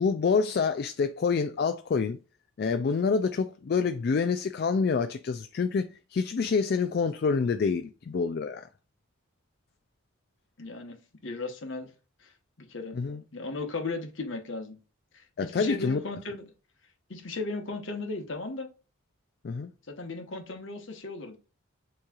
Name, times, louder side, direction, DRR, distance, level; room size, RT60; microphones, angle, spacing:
voice 1, 0.0-2.2 2.6-8.7 12.9-13.2 15.4-16.0 19.4-19.7, left 5 dB, 50° left, 0.3 m, -27 dB
voice 2, 10.6-11.9 12.2-12.3 12.6-13.0 13.3-14.8 15.1-16.5 17.1-18.7 19.9-21.4, left 3 dB, 65° left, 1.1 m, -36 dB
7.2 x 3.1 x 2.4 m
head